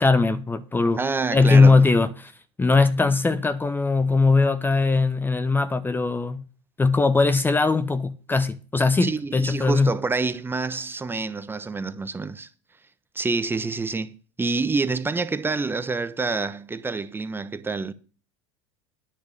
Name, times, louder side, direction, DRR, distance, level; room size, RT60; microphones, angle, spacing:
voice 1, 0.0-1.0 1.3-2.3 2.6-6.4 6.8-9.9, left 3 dB, 15° left, 0.9 m, -20 dB
voice 2, 1.0-1.8 9.0-12.5 13.1-17.9, right 4 dB, 15° right, 1.1 m, -27 dB
9.7 x 7.1 x 6.7 m
hypercardioid pair, 85°, 14 cm